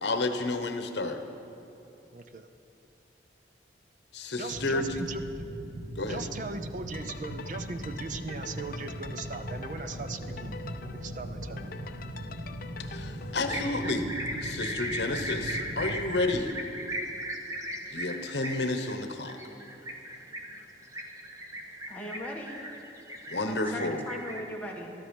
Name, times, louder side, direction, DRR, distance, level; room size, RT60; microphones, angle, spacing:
voice 1, 0.0-1.2 4.1-5.0 6.0-6.2 12.8-14.1 14.4-16.6 17.9-19.4 23.3-24.0, left 2 dB, 70° left, 7 dB, 1.0 m, -31 dB
voice 2, 2.1-2.5 4.4-5.2 6.1-10.6 10.9-11.7, right 3 dB, 45° right, 8 dB, 0.6 m, -39 dB
sound 1, 4.5-16.4, right 1 dB, 90° right, 1.0 m, -40 dB
sound 2, 6.9-13.8, left 5 dB, 50° left, 0.5 m, -45 dB
sound 3, 13.5-24.4, equal, 20° right, 1.2 m, -37 dB
voice 3, 21.9-22.6 23.4-24.9, left 1 dB, 10° left, -2 dB, 1.6 m, -39 dB
13.5 x 13.0 x 5.3 m, 2.8 s
head